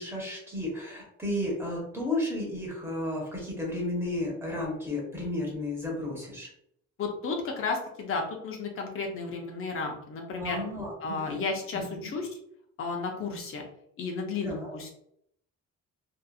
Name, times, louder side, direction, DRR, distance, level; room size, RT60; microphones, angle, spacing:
voice 1, 0.0-6.5 10.4-11.4 11.7-12.1 14.4-14.7, left 1 dB, 10° right, -3 dB, 0.8 m, -33 dB
voice 2, 7.0-10.6 11.0-12.3 12.8-13.6 14.0-14.9, left 4 dB, 45° left, 2 dB, 0.6 m, -33 dB
2.7 x 2.4 x 2.3 m, 0.73 s
cardioid pair, 165°, 30 cm